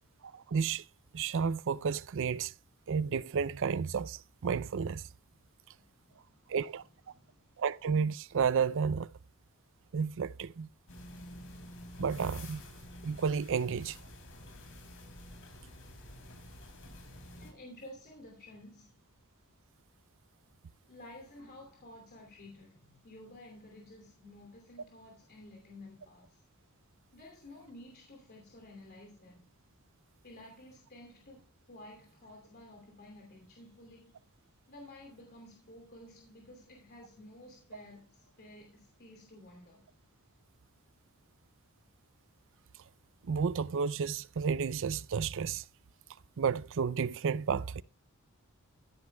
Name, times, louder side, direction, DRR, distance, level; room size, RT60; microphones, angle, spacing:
voice 1, 0.3-0.8 1.1-2.5 2.9-5.1 6.5-6.8 7.6-9.1 9.9-10.7 12.0-12.6 13.0-14.0 43.2-45.6 46.4-47.8, right 6 dB, 60° right, 0.5 m, -31 dB
voice 2, 5.7-6.6 7.1-7.3 17.4-19.0 20.9-26.4 27.1-29.4 30.2-34.2 34.7-39.9, left 1 dB, 45° left, 2.7 m, -53 dB
sound 1, 10.9-17.5, left 1 dB, 65° left, 3.2 m, -49 dB
15.0 x 9.6 x 2.3 m
head